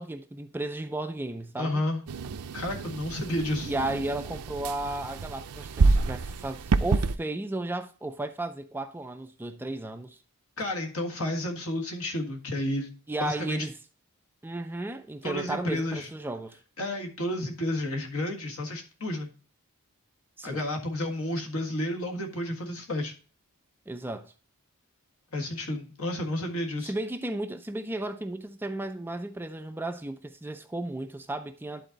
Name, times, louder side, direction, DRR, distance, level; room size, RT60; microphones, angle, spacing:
voice 1, 0.0-1.8 3.7-10.2 13.1-13.8 14.4-16.6 20.4-20.6 23.9-24.3 26.8-31.9, right 2 dB, 10° right, 0.3 m, -34 dB
voice 2, 1.6-2.0 2.5-3.7 10.6-12.9 13.2-13.7 15.2-16.1 16.8-19.3 20.4-23.1 25.3-26.9, left 1 dB, 65° left, 1.7 m, -31 dB
sound 1, 2.1-7.2, right 4 dB, 85° right, 0.5 m, -28 dB
11.0 x 4.1 x 3.9 m
head